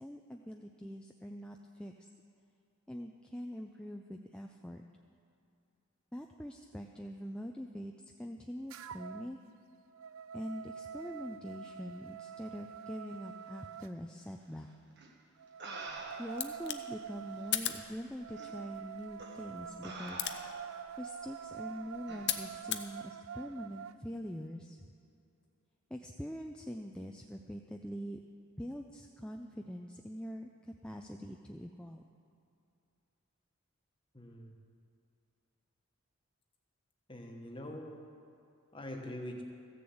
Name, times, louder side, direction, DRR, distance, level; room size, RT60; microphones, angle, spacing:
voice 1, 0.0-2.1 2.9-4.8 6.1-7.9 8.2-9.4 10.3-14.7 16.2-20.2 21.0-24.8 25.9-28.2 28.6-32.0, equal, 5° left, 2 dB, 0.4 m, -44 dB
sound 1, 8.7-9.3 9.7-13.9 15.4-24.0, right 8 dB, 70° right, 0.4 m, -46 dB
sound 2, 15.0-15.1 15.6-16.5 17.4-17.5 18.4-18.5 19.2-19.4 19.8-20.8 22.1-22.3, right 2 dB, 50° right, 1.3 m, -45 dB
sound 3, 15.8-22.9, left 12 dB, 50° left, 0.6 m, -41 dB
voice 2, 34.1-34.5 37.1-38.0 38.7-39.4, left 1 dB, 25° left, 2 dB, 1.2 m, -43 dB
15.0 x 6.9 x 7.8 m, 2.6 s
head